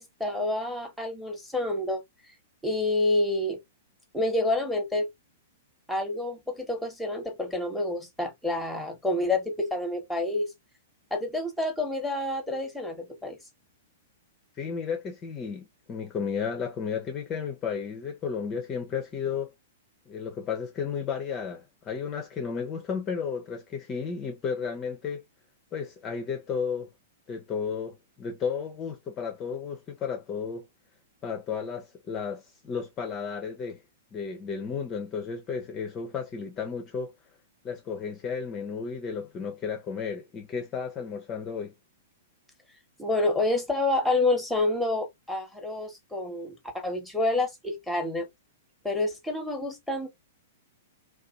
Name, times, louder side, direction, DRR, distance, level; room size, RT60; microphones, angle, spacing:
voice 1, 0.0-2.0 2.6-3.6 4.1-5.1 5.9-10.5 11.1-13.4 43.0-48.3 48.8-50.1, left 2 dB, ahead, 0.9 m, -28 dB
voice 2, 14.6-19.5 20.1-25.2 25.7-26.9 27.3-30.6 31.2-33.8 34.1-37.1 37.6-41.7, left 6 dB, 25° left, 0.5 m, -33 dB
2.5 x 2.3 x 2.4 m
figure-of-eight pair, 105°, 0 cm